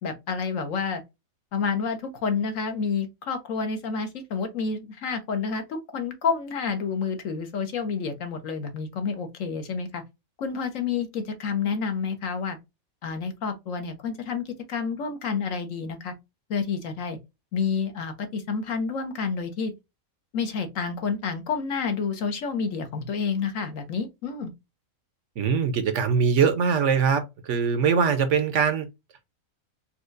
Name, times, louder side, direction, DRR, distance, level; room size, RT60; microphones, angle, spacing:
voice 1, 0.0-1.0 1.5-10.0 10.4-12.6 13.0-16.1 16.5-17.2 17.5-19.7 20.3-24.5, left 5 dB, 65° left, 1.2 m, -29 dB
voice 2, 25.4-28.9, right 6 dB, 65° right, 0.9 m, -22 dB
4.3 x 2.3 x 2.5 m
omnidirectional pair, 1.5 m